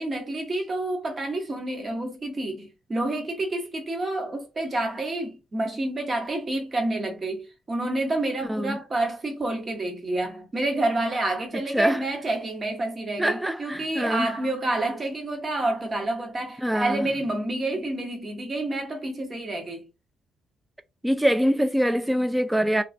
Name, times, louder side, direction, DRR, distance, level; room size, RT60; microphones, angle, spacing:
voice 1, 0.0-19.8, right 2 dB, 35° right, 1.1 m, -28 dB
voice 2, 13.2-14.3 16.6-17.1 21.0-22.8, equal, 5° right, 0.4 m, -24 dB
3.2 x 2.2 x 2.6 m
cardioid pair, 90°, 0 cm